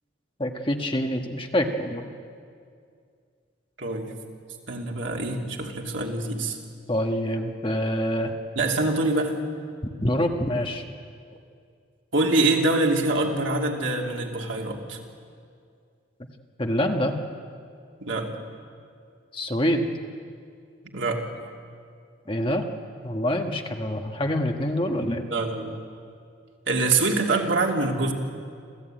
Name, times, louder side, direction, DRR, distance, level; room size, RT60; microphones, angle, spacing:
voice 1, 0.4-2.0 6.9-8.3 10.0-10.8 16.6-17.2 19.3-19.9 22.3-22.7 23.0-25.3, equal, 25° left, 4 dB, 1.4 m, -26 dB
voice 2, 3.8-4.1 4.7-6.6 8.5-9.4 12.1-15.0 18.0-18.3 20.8-21.2 25.3-25.7 26.7-28.1, right 2 dB, 80° right, 0 dB, 2.9 m, -25 dB
27.0 x 15.5 x 9.1 m, 2.3 s
head